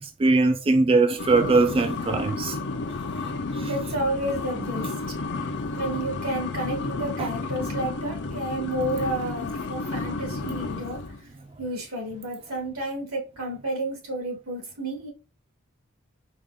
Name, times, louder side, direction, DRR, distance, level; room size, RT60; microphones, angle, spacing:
voice 1, 0.2-2.6 3.6-3.7 7.2-7.3, right 3 dB, 25° right, 0.3 m, -21 dB
sound 1, 1.2-11.2, left 3 dB, 55° left, 0.7 m, -32 dB
voice 2, 3.6-4.9 5.7-11.0 11.6-15.1, right 1 dB, 80° right, 2.6 m, -31 dB
5.0 x 2.5 x 3.6 m
head